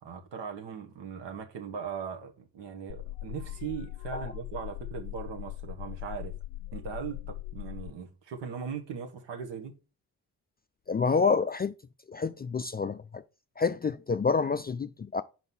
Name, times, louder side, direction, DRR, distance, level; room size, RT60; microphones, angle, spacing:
voice 1, 0.0-6.3 6.7-9.7, right 7 dB, 65° right, 1.5 m, -39 dB
sound 1, 2.9-7.9, left 15 dB, 75° left, 0.6 m, -40 dB
voice 2, 10.9-11.7 12.1-13.2 13.6-15.2, left 5 dB, 20° left, 0.4 m, -28 dB
5.3 x 4.5 x 5.9 m
hypercardioid pair, 45°, 45 cm